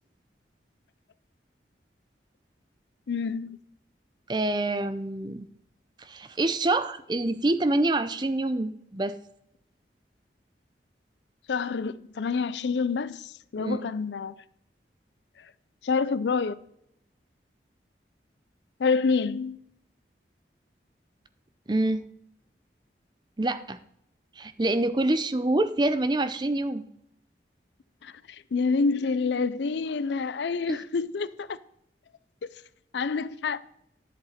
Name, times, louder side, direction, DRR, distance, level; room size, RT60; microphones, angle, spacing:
voice 1, 3.1-3.6 11.5-14.3 15.8-16.6 18.8-19.6 28.0-31.6 32.9-33.6, left 4 dB, 80° left, 0.5 m, -27 dB
voice 2, 4.3-5.5 6.0-9.2 13.6-13.8 21.7-22.1 23.4-23.8 24.4-26.8 30.7-30.8, right 2 dB, 25° right, 0.5 m, -26 dB
11.0 x 7.8 x 4.2 m
head